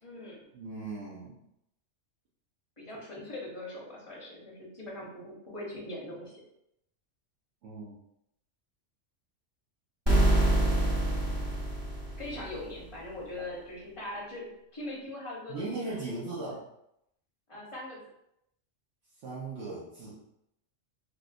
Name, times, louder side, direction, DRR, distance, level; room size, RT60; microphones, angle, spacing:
voice 1, 0.0-0.5 2.8-6.3 12.2-16.4 17.5-18.0, left 1 dB, 25° left, -5 dB, 1.0 m, -41 dB
voice 2, 0.5-1.4 7.6-8.0 15.5-16.6 19.2-20.2, right 3 dB, 75° right, -6 dB, 1.1 m, -38 dB
sound 1, 10.1-12.8, right 1 dB, 20° right, 1.2 m, -26 dB
3.5 x 2.6 x 2.5 m, 0.79 s
omnidirectional pair, 1.3 m